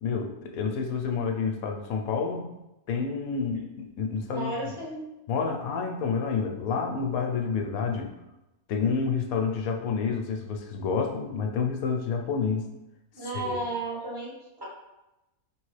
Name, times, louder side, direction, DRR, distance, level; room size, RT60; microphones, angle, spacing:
voice 1, 0.0-2.4 2.9-4.7 5.3-8.1 8.7-12.7 13.3-13.6, left 5 dB, 75° left, 4 dB, 1.0 m, -29 dB
voice 2, 4.3-5.0 13.1-14.6, right 2 dB, 15° right, -7 dB, 1.2 m, -33 dB
5.0 x 3.0 x 3.2 m, 0.95 s
omnidirectional pair, 1.6 m